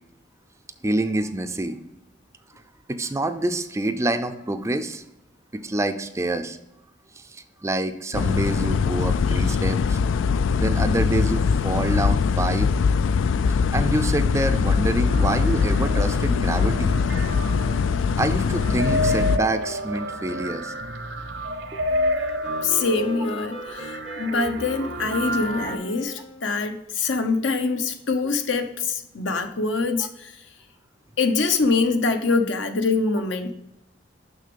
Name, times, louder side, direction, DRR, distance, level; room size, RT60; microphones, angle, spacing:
voice 1, 0.8-1.8 2.9-5.0 5.5-6.6 7.2-10.0 10.5-12.7 13.7-17.0 18.2-20.7, right 2 dB, 15° right, 10 dB, 0.4 m, -26 dB
sound 1, 8.1-19.4, left 5 dB, 85° left, 0.3 m, -22 dB
sound 2, 15.1-25.8, equal, 70° right, 0.8 m, -30 dB
Wind instrument woodwind instrument, 21.9-26.6, left 3 dB, 30° left, 0.6 m, -40 dB
voice 2, 22.6-30.3 31.2-33.5, left 4 dB, 70° left, 7 dB, 0.8 m, -24 dB
6.5 x 6.0 x 5.1 m, 0.87 s
head